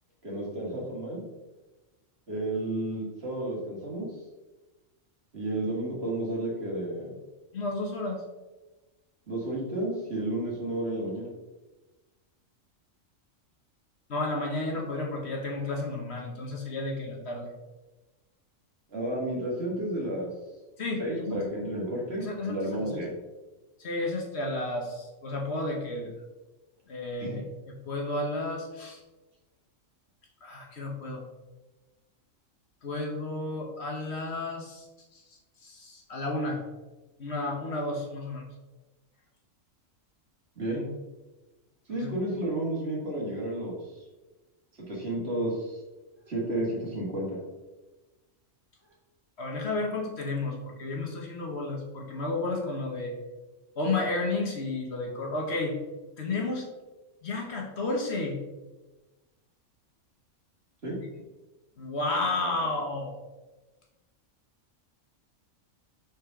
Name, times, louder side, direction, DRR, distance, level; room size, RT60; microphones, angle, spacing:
voice 1, 0.2-1.2 2.3-4.1 5.3-7.1 9.3-11.3 18.9-20.3 21.0-23.1 27.2-27.5 40.6-40.9 41.9-44.1 44.9-45.8 46.3-47.4 60.8-61.0, right 1 dB, 55° right, -3 dB, 2.3 m, -32 dB
voice 2, 7.5-8.2 14.1-17.5 20.8-21.5 22.2-23.0 23.8-26.1 26.9-29.0 30.4-31.2 32.8-34.9 35.1-35.2 35.6-36.6 37.2-38.5 41.9-42.1 49.4-53.1 53.8-55.8 56.2-56.7 57.2-58.4 61.8-63.1, left 2 dB, 55° left, 1 dB, 1.4 m, -32 dB
6.5 x 6.2 x 3.7 m, 1.1 s
omnidirectional pair, 1.3 m